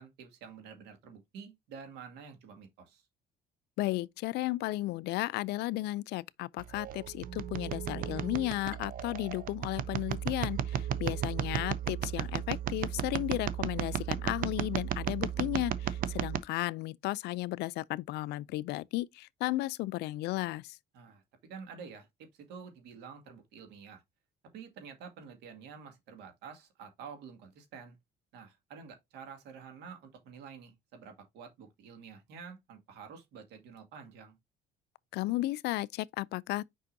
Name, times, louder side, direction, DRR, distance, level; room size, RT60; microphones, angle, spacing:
voice 1, 0.0-3.0 10.7-10.8 20.9-21.2 21.5-22.1 22.4-24.0 24.5-28.0 28.3-34.4, right 6 dB, 85° right, 2.2 m, -49 dB
voice 2, 3.8-20.8 35.1-36.7, left 18 dB, 80° left, 0.4 m, -34 dB
sound 1, 6.6-16.4, right 9 dB, 55° right, 0.6 m, -35 dB
6.7 x 5.4 x 2.6 m
cardioid pair, 110°, 17 cm